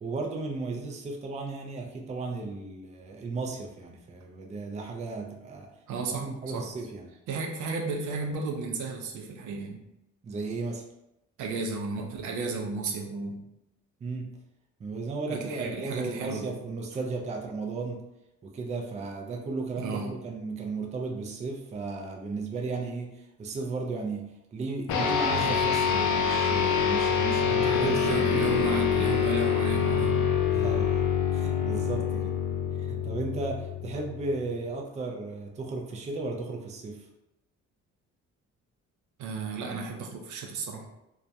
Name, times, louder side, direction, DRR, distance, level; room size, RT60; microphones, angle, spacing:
voice 1, 0.0-5.7 6.0-7.1 10.2-10.9 14.0-14.4 14.8-18.0 18.4-28.6 30.5-31.1 31.3-32.4 32.8-37.1, right 3 dB, 25° right, 1 dB, 0.4 m, -35 dB
voice 2, 5.9-6.7 7.3-9.8 11.4-13.4 15.3-16.5 19.8-20.2 27.7-30.3 39.2-40.9, right 4 dB, 75° right, 1 dB, 0.5 m, -34 dB
sound 1, 24.9-34.6, left 7 dB, 70° left, 0.5 m, -26 dB
2.2 x 2.1 x 2.7 m, 0.87 s
cardioid pair, 90°, 30 cm